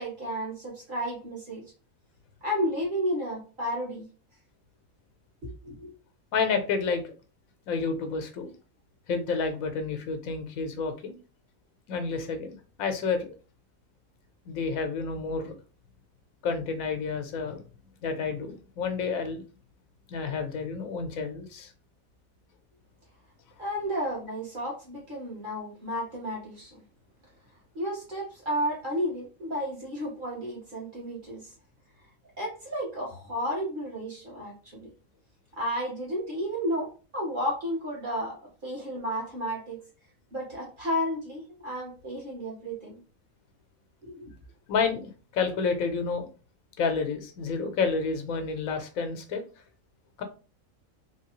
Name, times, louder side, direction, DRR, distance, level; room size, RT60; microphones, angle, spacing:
voice 1, 0.0-1.6 2.4-4.0 5.4-5.9 23.6-26.8 27.7-31.5 32.4-34.9 35.6-39.8 40.3-43.0 44.0-44.3, equal, 35° right, -4 dB, 1.6 m, -32 dB
voice 2, 6.3-7.1 7.7-8.5 9.1-11.1 11.9-13.3 14.5-15.5 16.4-17.6 18.0-19.4 20.1-21.7 44.7-46.3 46.8-49.4 50.2-50.3, left 5 dB, 75° left, 7 dB, 1.2 m, -30 dB
3.3 x 3.1 x 3.0 m, 0.35 s
omnidirectional pair, 1.5 m